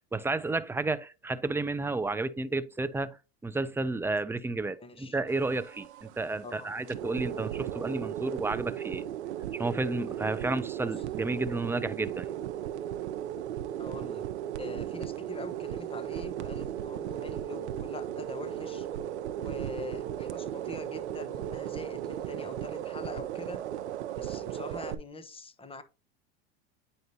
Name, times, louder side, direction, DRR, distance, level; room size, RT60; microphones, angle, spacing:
voice 1, 0.1-3.2 3.4-9.0 9.5-12.3, right 3 dB, 5° right, 0.5 m, -31 dB
voice 2, 4.8-5.2 6.4-6.7 13.8-14.3 14.6-18.9 19.3-23.6 24.1-25.8, left 2 dB, 15° left, 1.0 m, -43 dB
sound 1, 5.3-24.9, right 11 dB, 85° right, 0.7 m, -36 dB
9.2 x 5.4 x 2.8 m
hypercardioid pair, 95°, 33 cm